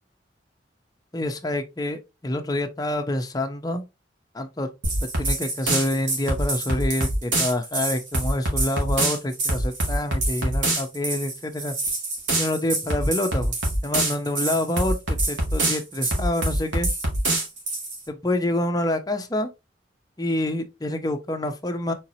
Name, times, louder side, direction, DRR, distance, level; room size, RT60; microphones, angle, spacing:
voice 1, 1.1-3.8 4.3-4.7 5.0-11.7 12.4-13.6 13.8-16.9 18.1-19.5 20.2-21.9, left 1 dB, 20° left, 0.6 m, -27 dB
sound 1, 4.8-18.0, right 2 dB, 80° right, 2.1 m, -25 dB
4.4 x 4.0 x 2.7 m
head